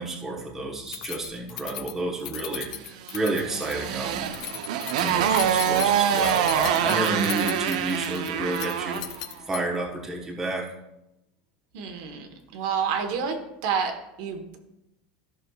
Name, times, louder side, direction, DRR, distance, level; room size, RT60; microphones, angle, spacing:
voice 1, 0.0-4.3 5.0-9.0 9.5-10.7, right 2 dB, 10° right, -3 dB, 1.2 m, -30 dB
Keys jangling, 0.9-9.9, left 12 dB, 75° left, 0.6 m, -37 dB
Motorcycle, 3.1-9.1, right 9 dB, 80° right, 0.7 m, -25 dB
sound 1, 5.1-9.9, left 2 dB, 10° left, 1.6 m, -44 dB
voice 2, 11.7-13.4 13.6-14.6, right 6 dB, 55° right, 4 dB, 1.2 m, -29 dB
14.0 x 6.3 x 2.4 m, 0.89 s
supercardioid pair, 175°, 4 cm